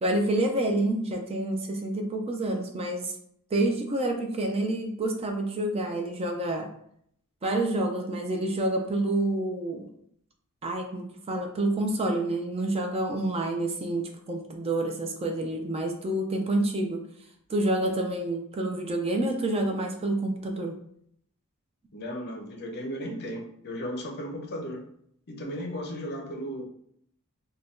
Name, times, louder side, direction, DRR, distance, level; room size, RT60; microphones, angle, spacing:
voice 1, 0.0-3.1 3.5-6.7 7.4-9.9 10.6-17.0 17.5-20.7, right 1 dB, 25° right, 3 dB, 0.4 m, -28 dB
voice 2, 21.9-24.8 25.3-26.7, equal, 50° left, 2 dB, 0.6 m, -35 dB
2.5 x 2.2 x 3.5 m, 0.67 s
head